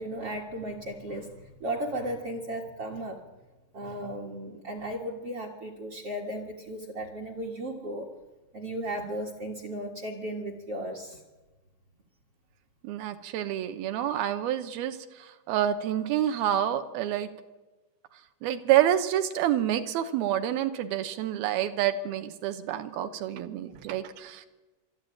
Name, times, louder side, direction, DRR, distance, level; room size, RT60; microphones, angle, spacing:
voice 1, 0.0-3.2 3.7-8.1 8.5-11.2, right 1 dB, 50° right, 5 dB, 1.8 m, -35 dB
voice 2, 12.8-17.3 18.4-24.5, right 11 dB, 75° right, 10 dB, 2.6 m, -28 dB
23.0 x 13.0 x 9.0 m, 1.2 s
omnidirectional pair, 4.9 m